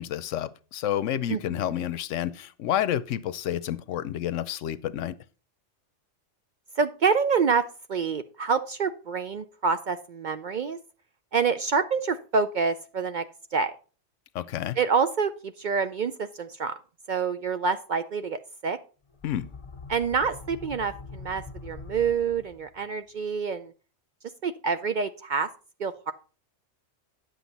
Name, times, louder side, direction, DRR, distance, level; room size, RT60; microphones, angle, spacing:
voice 1, 0.0-5.2 14.3-14.8 19.2-19.5, left 11 dB, 85° left, 1.0 m, -29 dB
voice 2, 1.3-1.7 6.8-7.6 7.9-10.8 11.3-13.3 13.5-13.7 14.8-16.8 17.1-18.8 19.9-23.7 24.4-25.5 25.8-26.1, right 5 dB, 55° right, 0.5 m, -27 dB
sound 1, 19.1-22.9, left 4 dB, 25° left, 1.1 m, -43 dB
9.6 x 7.8 x 4.1 m
omnidirectional pair, 1.2 m